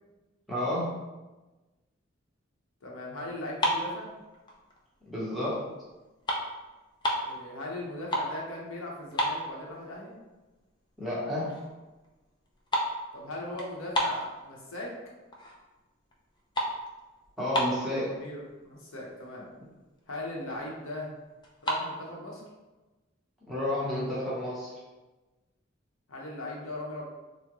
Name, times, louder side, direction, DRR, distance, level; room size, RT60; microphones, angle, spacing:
voice 1, 0.5-0.9 5.1-5.6 11.0-11.5 17.4-18.1 23.5-24.7, left 1 dB, ahead, -8 dB, 0.9 m, -30 dB
voice 2, 2.8-4.2 7.2-10.1 13.1-14.9 17.8-19.5 20.1-21.1 21.6-22.4 26.1-27.1, left 1 dB, 75° left, -2 dB, 0.8 m, -39 dB
sound 1, 3.4-4.9 5.3-5.6 5.9-7.3 7.8-8.4 8.7-8.8 9.1-10.0 10.4-10.5 11.1-11.2 11.4-11.8 12.0-14.9 15.3-15.8 16.0-18.0 18.7-18.8 19.0-19.3 19.7-19.8 20.0-20.7 21.4-21.8, equal, 20° left, 0.4 m, -31 dB
3.7 x 2.1 x 2.9 m, 1.1 s
head